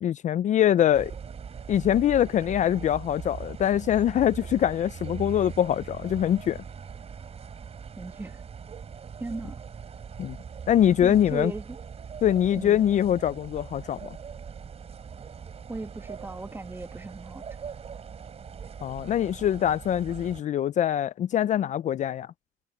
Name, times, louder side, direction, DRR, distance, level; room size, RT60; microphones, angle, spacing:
voice 1, 0.0-1.1 1.7-6.6 10.2-10.4 10.7-11.5 12.2-14.2 18.8-22.3, left 10 dB, 45° left, 0.4 m, -24 dB
sound 1, 0.9-20.4, right 6 dB, 40° right, 3.9 m, -41 dB
voice 2, 8.0-8.4 9.2-9.6 11.0-11.8 12.6-12.9 15.7-17.4, right 2 dB, 15° right, 1.2 m, -37 dB
cardioid pair, 110°, 17 cm